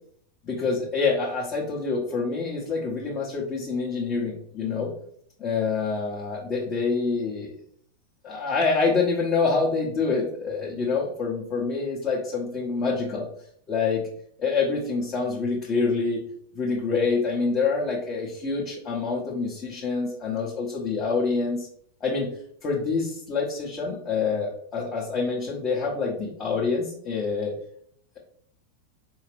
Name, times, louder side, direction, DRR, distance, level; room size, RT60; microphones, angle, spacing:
voice 1, 0.4-4.9 5.4-7.5 8.2-13.3 13.7-14.0 14.4-16.2 16.5-21.7 22.0-22.3 22.6-27.5, left 4 dB, 30° left, -4 dB, 1.0 m, -26 dB
4.8 x 2.7 x 3.3 m, 0.63 s
figure-of-eight pair, 90°, 0 cm